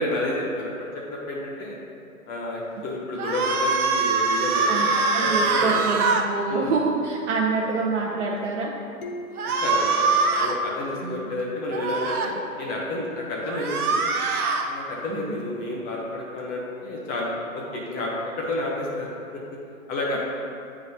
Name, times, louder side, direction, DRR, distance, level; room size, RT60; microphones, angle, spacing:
voice 1, 0.0-1.8 2.3-4.9 5.2-5.8 6.5-6.8 7.6-7.7 8.3-8.4 9.4-14.0 14.6-19.4 19.9-20.2, left 1 dB, 20° left, -3 dB, 0.7 m, -30 dB
sound 1, 3.2-6.3 9.4-10.6 11.7-12.3 13.5-14.7, right 4 dB, 90° right, 0.7 m, -23 dB
voice 2, 4.7-8.7 11.0-11.2 15.1-15.4, right 4 dB, 50° right, -4 dB, 0.8 m, -26 dB
sound 2, 9.0-11.6, left 1 dB, 85° left, 0.8 m, -41 dB
9.0 x 3.9 x 2.7 m, 2.5 s
hypercardioid pair, 125°, 43 cm